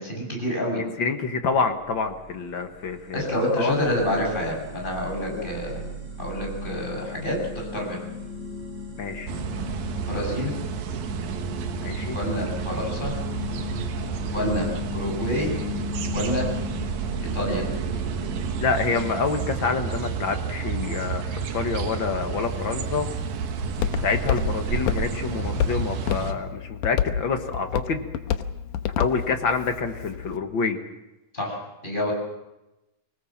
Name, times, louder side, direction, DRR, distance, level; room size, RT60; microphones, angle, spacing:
voice 1, 0.0-0.8 3.1-5.8 6.2-8.0 10.1-10.6 12.1-13.1 14.3-15.5 16.1-16.5 17.3-17.6 31.3-32.1, equal, 15° left, 0 dB, 7.6 m, -28 dB
voice 2, 0.7-3.3 3.6-3.7 5.3-5.5 9.0-9.3 11.8-12.2 18.6-23.1 24.0-28.0 29.0-30.8, left 5 dB, 50° left, 6 dB, 1.5 m, -27 dB
sound 1, 1.7-18.7, left 2 dB, 30° right, 5.5 m, -36 dB
sound 2, 9.3-26.3, right 6 dB, 85° right, 3.3 m, -31 dB
Walk footsteps, 22.4-30.4, left 9 dB, 75° left, 2.3 m, -30 dB
25.0 x 19.0 x 7.4 m, 0.97 s
omnidirectional pair, 4.0 m